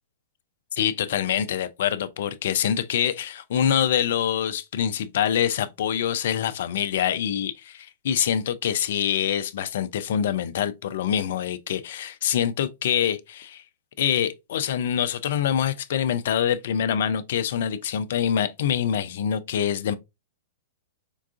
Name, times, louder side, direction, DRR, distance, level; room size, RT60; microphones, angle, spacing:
voice 1, 0.7-13.6 14.0-19.9, left 9 dB, 60° left, 0.4 m, -25 dB
4.6 x 2.3 x 2.5 m
hypercardioid pair, 110°, 0 cm